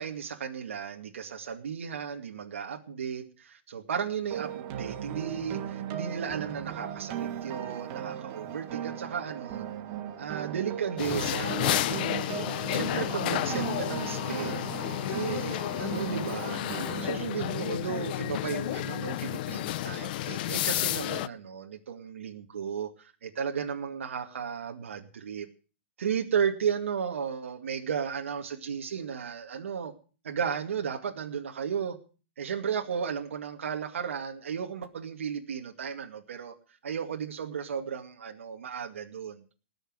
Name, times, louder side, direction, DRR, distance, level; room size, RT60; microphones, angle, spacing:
voice 1, 0.0-9.7 10.2-14.7 15.1-16.6 17.0-25.5 26.0-29.9 30.2-32.0 32.4-36.5 36.8-39.4, right 7 dB, 80° right, 3 dB, 2.2 m, -34 dB
sound 1, 4.3-17.1, right 10 dB, 35° right, 1.7 m, -37 dB
sound 2, 11.0-21.3, left 15 dB, 45° left, 0.6 m, -31 dB
19.5 x 6.6 x 7.9 m, 0.38 s
hypercardioid pair, 150°, 7 cm